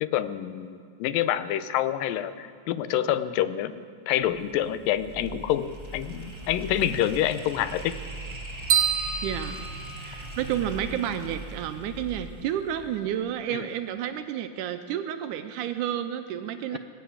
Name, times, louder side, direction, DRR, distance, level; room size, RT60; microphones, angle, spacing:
voice 1, 0.0-7.9 13.5-13.7, left 11 dB, 85° left, 12 dB, 2.4 m, -27 dB
sound 1, 4.1-13.3, right 2 dB, 15° right, 1.2 m, -40 dB
sound 2, 8.7-10.6, right 8 dB, 65° right, 2.3 m, -27 dB
voice 2, 9.2-9.7 10.0-16.8, right 10 dB, 80° right, 9 dB, 2.0 m, -31 dB
21.0 x 8.1 x 8.6 m, 2.2 s
omnidirectional pair, 3.9 m